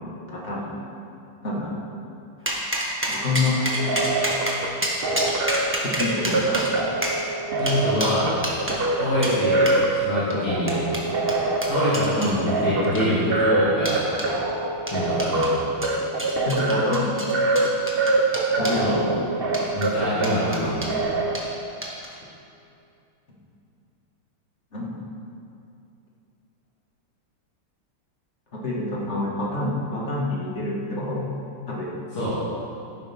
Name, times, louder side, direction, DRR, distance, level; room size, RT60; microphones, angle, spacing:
voice 1, 0.3-0.7 1.4-1.7 3.1-3.7 5.8-6.6 12.2-12.4 16.5-17.2 18.6-19.1 20.4-20.7 24.7-25.0 28.5-31.3 31.7-31.9, left 2 dB, 30° left, -5 dB, 2.3 m, -27 dB
sound 1, 2.5-8.8 9.2-9.4 9.7-9.8 10.3-12.3 12.8-13.3 13.9-14.3 14.9-15.5 15.8-18.8 19.5-19.9 20.2-21.0 21.3-21.5 21.8-22.1, right 1 dB, 5° right, 1.1 m, -29 dB
sound 2, 3.6-21.4, right 2 dB, 50° right, 0.7 m, -25 dB
voice 2, 7.6-8.3 8.9-10.8 11.7-14.0 14.9-15.5 18.8-19.0 19.7-20.8 32.1-32.3, left 1 dB, 80° left, -11 dB, 3.9 m, -25 dB
14.0 x 11.0 x 3.8 m, 2.5 s
omnidirectional pair, 2.4 m